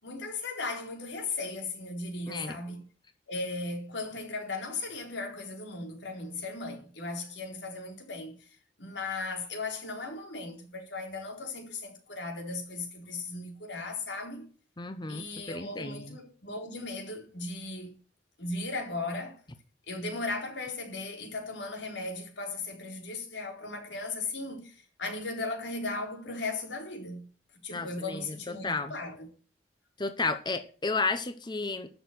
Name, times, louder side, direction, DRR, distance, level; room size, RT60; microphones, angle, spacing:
voice 1, 0.0-2.9 3.3-8.5 8.8-14.5 15.1-17.9 18.4-19.4 19.9-27.3 27.6-29.3, left 3 dB, 90° left, 4.1 m, -37 dB
voice 2, 14.8-16.1 27.7-28.2 28.5-28.9 30.0-31.9, left 3 dB, 25° left, 1.0 m, -32 dB
12.5 x 6.6 x 7.9 m
head